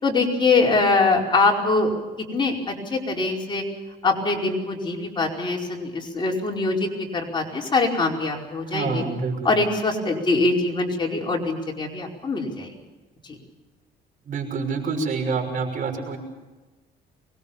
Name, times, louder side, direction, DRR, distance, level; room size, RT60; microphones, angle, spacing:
voice 1, 0.0-1.9 2.3-3.6 4.0-9.0 9.4-12.7 13.3-13.4, left 3 dB, 25° left, 0 dB, 5.0 m, -23 dB
voice 2, 8.7-9.5 14.3-16.2, right 4 dB, 50° right, 4 dB, 6.1 m, -27 dB
24.5 x 21.0 x 7.3 m, 1.2 s
cardioid pair, 110°, 17 cm